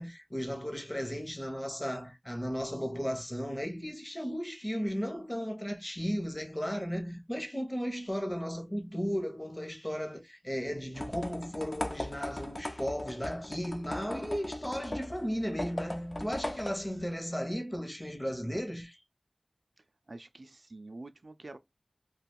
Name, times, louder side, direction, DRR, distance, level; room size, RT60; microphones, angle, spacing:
voice 1, 0.0-19.0, equal, 15° left, 0.7 m, -35 dB
sound 1, 10.9-17.1, left 1 dB, 50° left, 0.5 m, -39 dB
voice 2, 20.1-21.6, right 2 dB, 65° right, 0.3 m, -47 dB
2.4 x 2.2 x 3.4 m
wide cardioid pair, 50°, 0 cm